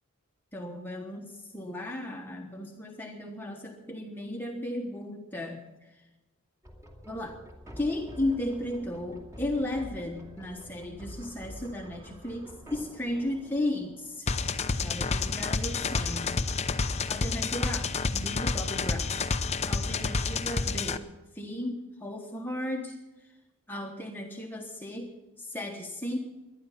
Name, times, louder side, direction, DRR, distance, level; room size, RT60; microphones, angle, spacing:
voice 1, 0.5-6.0 7.0-7.4 7.8-14.3 14.8-16.4 17.1-19.1 19.7-21.1 21.3-23.3 23.7-26.2, left 1 dB, 10° left, 0 dB, 1.2 m, -35 dB
sound 1, 6.6-14.2, equal, 15° right, 2.4 m, -47 dB
sound 2, 14.3-21.0, left 4 dB, 30° left, 0.7 m, -29 dB
19.0 x 11.5 x 5.8 m, 1.1 s
head